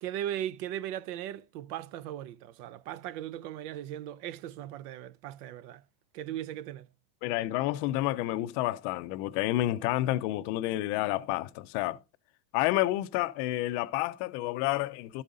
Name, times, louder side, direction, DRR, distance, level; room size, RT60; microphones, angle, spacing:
voice 1, 0.0-5.8 6.1-6.9, right 11 dB, 65° right, 0.6 m, -38 dB
voice 2, 7.2-12.0 12.5-15.2, left 16 dB, 45° left, 0.5 m, -29 dB
12.5 x 5.4 x 3.7 m
supercardioid pair, 155°, 50 cm